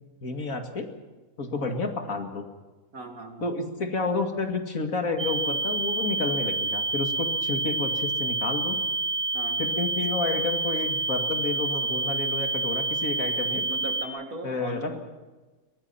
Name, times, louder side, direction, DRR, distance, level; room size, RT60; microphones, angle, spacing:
voice 1, 0.2-0.9 1.4-2.4 3.4-8.8 9.6-13.6 14.4-15.0, left 3 dB, 75° left, 4 dB, 2.6 m, -30 dB
voice 2, 2.9-3.5 9.3-9.6 13.5-15.0, right 1 dB, 75° right, 4 dB, 3.0 m, -38 dB
sound 1, 5.2-14.0, right 3 dB, 20° right, 1.0 m, -28 dB
23.5 x 20.0 x 5.9 m, 1.2 s
omnidirectional pair, 1.5 m